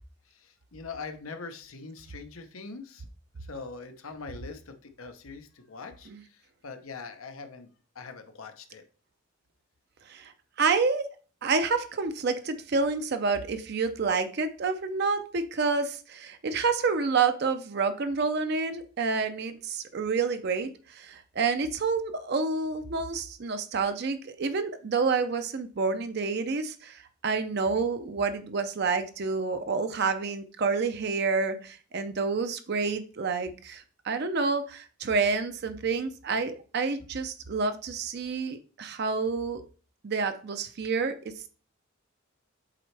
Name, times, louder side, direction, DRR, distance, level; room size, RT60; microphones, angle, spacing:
voice 1, 0.3-3.0 3.4-7.7 7.9-8.8, left 4 dB, 90° left, 8 dB, 0.9 m, -42 dB
voice 2, 10.6-11.1 11.4-39.6 40.0-41.3, right 4 dB, 50° right, 9 dB, 0.5 m, -28 dB
7.5 x 4.3 x 3.3 m, 0.38 s
head